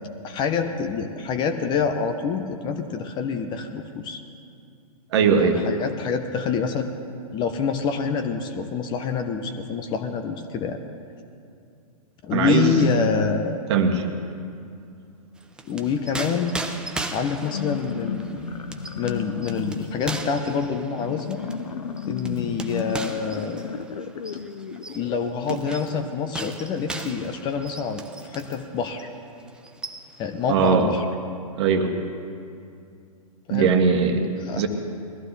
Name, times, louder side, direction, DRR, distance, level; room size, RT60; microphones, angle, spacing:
voice 1, 0.2-4.2 5.4-6.9 7.3-10.8 12.2-13.6 15.6-16.5 17.1-18.5 19.0-21.4 22.1-23.6 24.9-29.1 30.2-31.0 33.5-33.7 34.4-34.6, left 6 dB, 25° left, 7 dB, 0.8 m, -26 dB
voice 2, 5.1-5.6 12.3-13.1 13.7-14.0 25.5-25.6 30.5-30.9 31.6-31.9 33.5-34.3 34.6-34.7, right 5 dB, 45° right, 5 dB, 1.5 m, -20 dB
sound 1, 15.4-28.7 29.0-29.2 29.5-30.3, right 2 dB, 5° right, 0.6 m, -37 dB
sound 2, 17.3-25.2, left 6 dB, 70° left, 0.8 m, -34 dB
21.0 x 14.5 x 3.3 m, 2.4 s
figure-of-eight pair, 115°, 19 cm